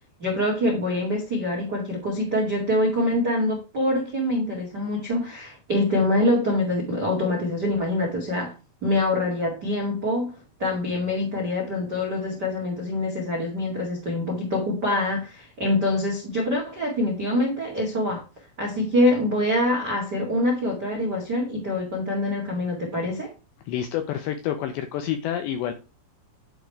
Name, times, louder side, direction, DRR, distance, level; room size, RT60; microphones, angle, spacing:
voice 1, 0.2-8.5 8.8-10.3 10.6-18.2 18.6-23.3, left 1 dB, 60° right, -1 dB, 1.0 m, -25 dB
voice 2, 23.7-25.7, left 10 dB, 80° left, 7 dB, 2.5 m, -28 dB
10.5 x 5.1 x 4.6 m, 0.31 s
omnidirectional pair, 5.9 m